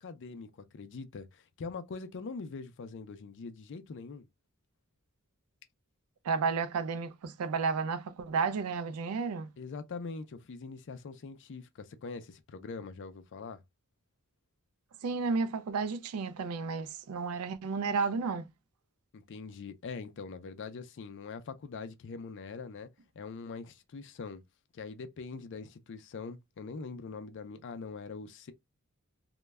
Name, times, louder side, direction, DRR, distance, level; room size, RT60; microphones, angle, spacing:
voice 1, 0.0-4.3 9.6-13.6 19.1-22.9 23.2-24.4 24.7-28.5, left 4 dB, 55° left, 0.4 m, -43 dB
voice 2, 6.2-9.5 15.0-18.5, right 5 dB, 75° right, 0.4 m, -32 dB
2.2 x 2.0 x 3.3 m
head